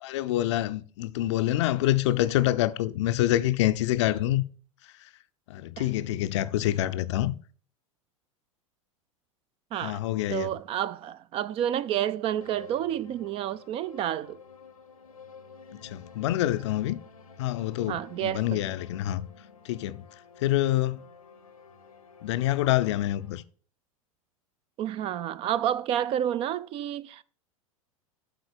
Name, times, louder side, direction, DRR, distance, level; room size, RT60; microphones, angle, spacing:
voice 1, 0.0-4.4 5.0-5.1 5.5-7.4 9.8-10.5 15.7-17.0 17.4-19.3 19.6-20.0 20.4-21.0 22.2-23.4, left 14 dB, 55° left, 0.5 m, -26 dB
voice 2, 9.7-10.0 10.3-14.4 17.9-18.6 24.8-27.2, right 11 dB, 30° right, 0.4 m, -30 dB
sound 1, 12.4-23.4, left 5 dB, 85° left, 0.8 m, -51 dB
8.3 x 4.0 x 6.5 m
figure-of-eight pair, 85°, 18 cm